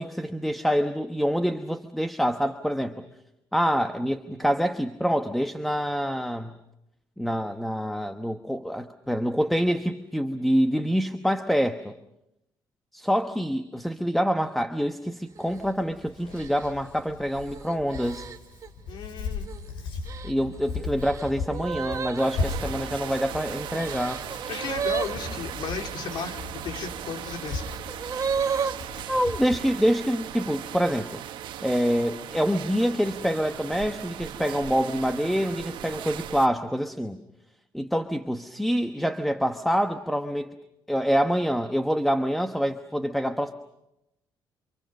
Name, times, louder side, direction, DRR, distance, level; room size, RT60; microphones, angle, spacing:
voice 1, 0.0-3.0 3.5-6.6 7.2-11.9 12.9-18.3 20.2-24.2 29.1-31.2 31.6-37.2 37.7-40.5 40.9-43.5, equal, ahead, 8 dB, 1.1 m, -26 dB
sound 1, 15.3-15.7 16.3-18.7 19.3-19.7 20.1-25.9 26.7-28.8, right 6 dB, 40° right, 1.2 m, -34 dB
Hands, 15.5-29.6, left 4 dB, 85° left, 7.6 m, -37 dB
voice 2, 18.9-19.5 24.5-27.7, left 6 dB, 65° left, 4 dB, 3.2 m, -35 dB
sound 2, 22.2-36.5, right 11 dB, 75° right, 1.3 m, -38 dB
29.5 x 26.0 x 6.6 m, 0.87 s
cardioid pair, 120°, 8 cm